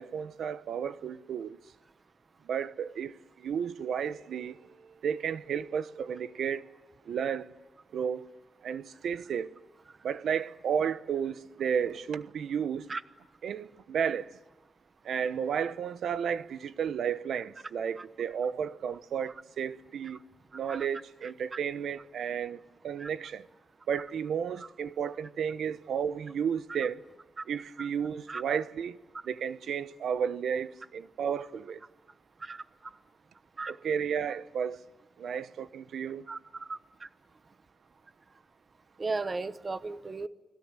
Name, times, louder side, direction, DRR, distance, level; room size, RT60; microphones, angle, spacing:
voice 1, 0.0-1.6 2.5-6.6 7.1-7.5 7.9-8.2 8.6-9.5 10.0-12.9 13.4-14.3 15.0-20.2 20.5-23.5 23.9-27.0 27.5-29.0 29.2-31.8 33.7-34.8 35.2-36.2, right 7 dB, 85° right, 1.0 m, -33 dB
voice 2, 36.3-37.1 39.0-40.3, right 3 dB, 30° right, 1.1 m, -36 dB
29.5 x 20.5 x 9.1 m
wide cardioid pair, 120°, 0 cm